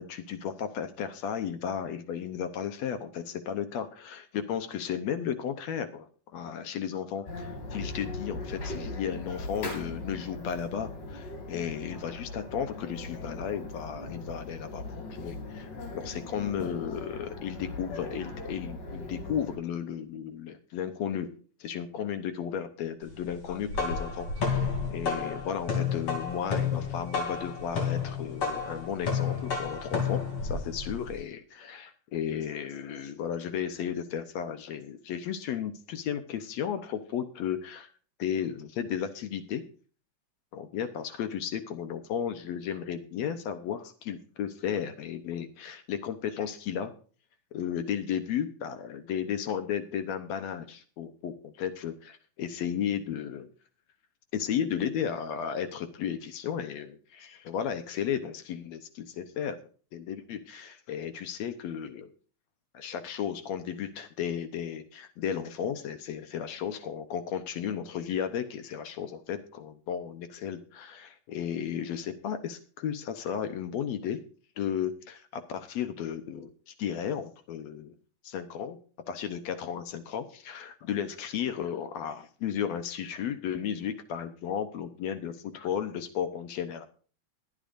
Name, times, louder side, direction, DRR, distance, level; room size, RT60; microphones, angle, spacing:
voice 1, 0.0-6.1 6.3-21.3 21.6-37.9 38.2-39.6 40.5-46.9 47.5-53.5 54.3-59.6 59.9-62.1 62.7-74.2 74.6-77.9 78.2-78.8 79.1-86.8, left 8 dB, 65° left, 10 dB, 1.9 m, -34 dB
sound 1, 7.3-19.6, left 2 dB, 85° left, 4.4 m, -39 dB
sound 2, 23.4-31.2, left 5 dB, 45° left, 3.9 m, -31 dB
21.5 x 8.9 x 2.6 m, 0.40 s
omnidirectional pair, 3.6 m